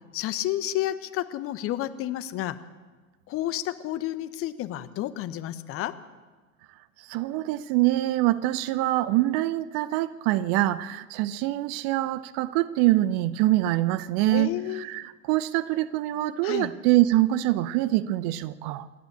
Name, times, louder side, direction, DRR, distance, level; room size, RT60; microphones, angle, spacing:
voice 1, 0.1-2.6 3.3-5.9 14.3-14.9 16.4-16.7, left 13 dB, 30° left, 1.1 m, -30 dB
voice 2, 7.0-18.9, right 16 dB, 40° right, 0.8 m, -24 dB
27.5 x 11.5 x 8.3 m
figure-of-eight pair, 85°, 42 cm